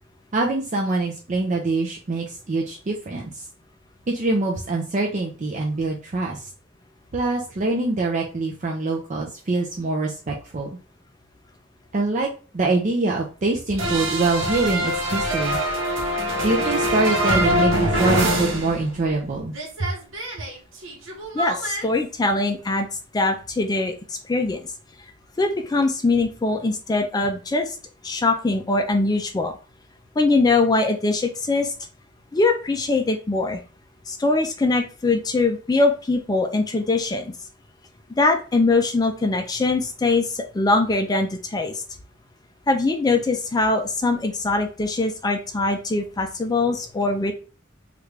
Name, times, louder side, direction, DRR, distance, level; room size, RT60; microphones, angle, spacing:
voice 1, 0.3-3.4 4.1-6.5 7.1-10.7 11.9-12.3 12.5-15.6 16.4-19.5 19.8-19.9, right 3 dB, 40° right, -1 dB, 0.5 m, -24 dB
sound 1, 13.8-19.2 19.5-21.8, equal, 80° right, 0.9 m, -24 dB
voice 2, 21.3-22.9 23.1-24.6 25.4-27.8 28.0-29.5 30.2-31.7 32.3-33.6 34.1-37.3 38.2-41.7 42.7-47.3, left 3 dB, 20° left, 5 dB, 0.4 m, -22 dB
3.3 x 2.4 x 3.2 m, 0.35 s
head